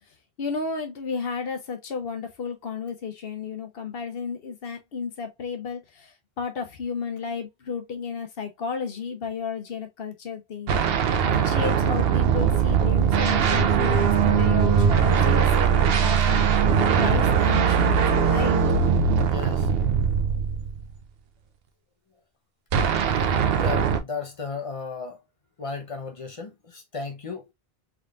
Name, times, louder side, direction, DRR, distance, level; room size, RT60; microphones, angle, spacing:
voice 1, 0.4-10.8 11.3-16.4 17.0-18.6, left 5 dB, 70° left, 1.1 m, -33 dB
sound 1, 10.7-20.9 22.7-24.0, right 7 dB, 75° right, 0.9 m, -21 dB
voice 2, 19.3-19.7 23.1-23.3 23.6-25.2 25.6-27.4, left 4 dB, 35° left, 0.8 m, -34 dB
3.6 x 3.5 x 2.4 m
omnidirectional pair, 1.0 m